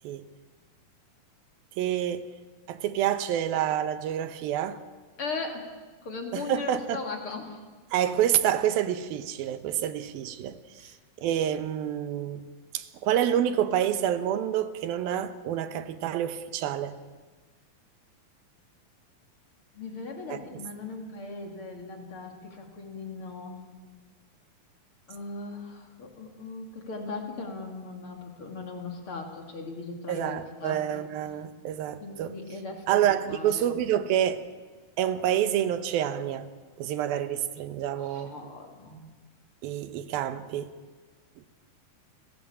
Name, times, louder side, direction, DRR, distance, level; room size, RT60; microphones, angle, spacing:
voice 1, 1.8-2.3 2.7-4.8 6.3-7.0 7.9-10.6 11.2-12.4 12.7-17.0 20.3-20.6 30.1-32.4 32.9-34.4 35.0-36.5 36.8-38.4 39.6-40.7 41.4-41.5, right 10 dB, 85° right, 2.9 m, -28 dB
voice 2, 5.2-5.7 6.0-7.6 10.8-11.0 19.7-23.6 25.1-31.0 32.0-33.0 33.3-33.7 37.9-39.1, left 3 dB, 40° left, 3.3 m, -38 dB
29.5 x 20.0 x 8.8 m
omnidirectional pair, 4.2 m